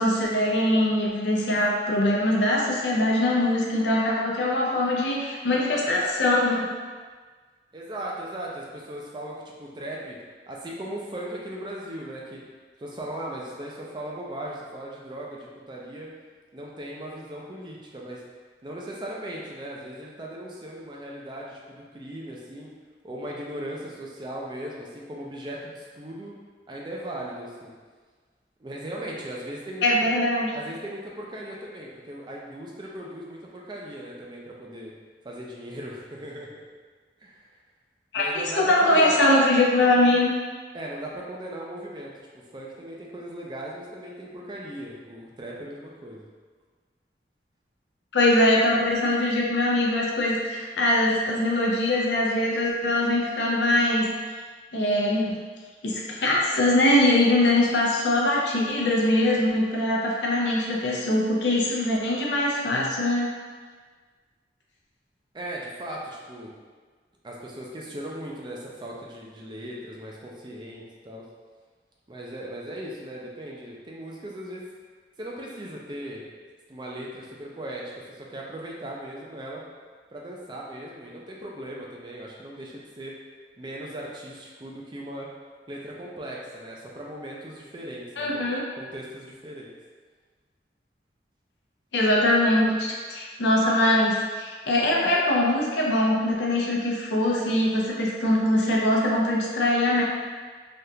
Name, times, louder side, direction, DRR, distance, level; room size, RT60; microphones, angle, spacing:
voice 1, 0.0-6.7 29.8-30.5 38.1-40.3 48.1-54.1 54.7-55.4 55.8-63.3 88.2-88.6 91.9-100.0, left 1 dB, 90° left, -3 dB, 0.6 m, -22 dB
voice 2, 7.7-10.2 10.5-12.4 12.8-16.1 16.5-18.2 18.6-22.7 23.0-26.3 26.7-27.7 28.6-30.1 30.5-34.9 35.2-36.6 37.2-37.5 38.2-39.3 40.7-42.1 42.5-46.3 65.3-66.5 67.2-71.2 72.1-74.7 75.2-76.2 76.7-79.6 80.1-83.1 83.6-85.3 85.7-88.5 88.8-89.7, right 1 dB, 25° right, -3 dB, 0.4 m, -38 dB
3.4 x 2.3 x 2.7 m, 1.5 s
head